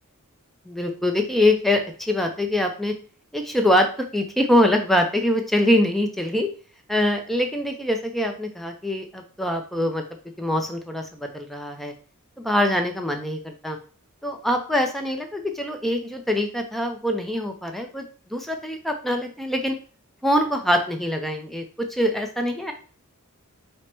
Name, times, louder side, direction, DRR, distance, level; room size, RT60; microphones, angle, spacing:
voice 1, 0.7-2.9 3.3-6.5 6.9-10.0 10.4-11.9 12.4-13.8 14.2-18.1 18.3-19.8 20.2-22.7, left 1 dB, ahead, 3 dB, 0.4 m, -24 dB
4.5 x 2.1 x 4.3 m, 0.40 s
head